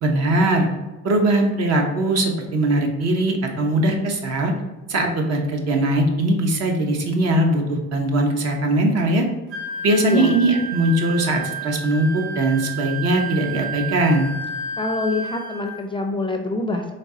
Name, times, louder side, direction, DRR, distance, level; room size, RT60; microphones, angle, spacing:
voice 1, 0.0-0.7 1.0-4.5 4.9-9.2 9.8-14.3, right 1 dB, 55° right, 2 dB, 0.9 m, -20 dB
Wind instrument woodwind instrument, 9.5-15.7, right 3 dB, 85° right, 1.4 m, -31 dB
voice 2, 10.0-10.3 14.8-16.9, left 2 dB, 15° left, 4 dB, 0.4 m, -25 dB
4.1 x 3.2 x 3.7 m, 1.1 s
cardioid pair, 115°, 30 cm